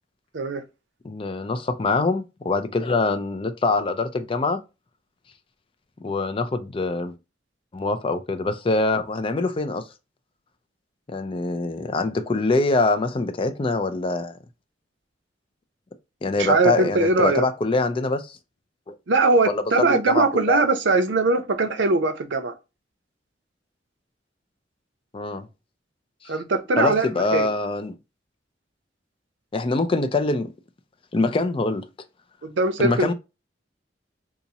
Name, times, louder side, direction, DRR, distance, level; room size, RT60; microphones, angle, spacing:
voice 1, 1.0-4.6 6.0-7.1 7.7-9.9 11.1-14.4 16.2-18.4 18.9-19.0 19.5-20.6 25.1-25.5 26.2-26.3 26.8-27.9 29.5-30.5 31.1-31.9 32.8-33.1, left 3 dB, 30° left, 0.4 m, -24 dB
voice 2, 16.4-17.4 19.1-22.5 26.3-27.5 32.4-33.1, right 3 dB, 90° right, 0.6 m, -21 dB
4.0 x 2.4 x 2.7 m
head